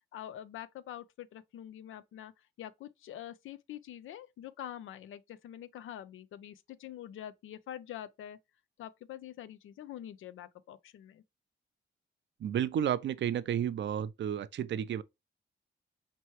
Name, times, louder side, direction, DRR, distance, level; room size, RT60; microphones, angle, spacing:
voice 1, 0.1-2.3 2.6-8.4 8.8-11.2, left 11 dB, 90° left, 0.5 m, -45 dB
voice 2, 12.4-15.0, right 9 dB, 65° right, 0.5 m, -32 dB
4.5 x 3.0 x 3.0 m
cardioid pair, 80°, 20 cm